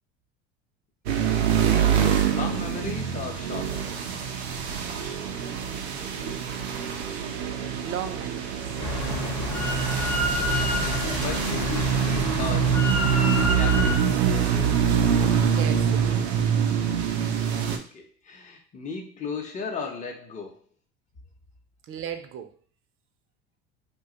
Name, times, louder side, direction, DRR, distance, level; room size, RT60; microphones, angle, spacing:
voice 1, 1.1-3.8 10.3-12.8 13.5-14.0 17.6-20.6, left 4 dB, 25° left, 1 dB, 0.8 m, -36 dB
sound 1, 1.1-17.8, right 8 dB, 85° right, 0.6 m, -25 dB
voice 2, 5.1-8.6 9.6-9.7 15.5-16.2 21.9-22.6, right 8 dB, 45° right, 8 dB, 0.6 m, -39 dB
Drill, 8.8-14.0, left 2 dB, 55° left, 1.0 m, -29 dB
2.7 x 2.3 x 3.8 m, 0.42 s
hypercardioid pair, 75°, 31 cm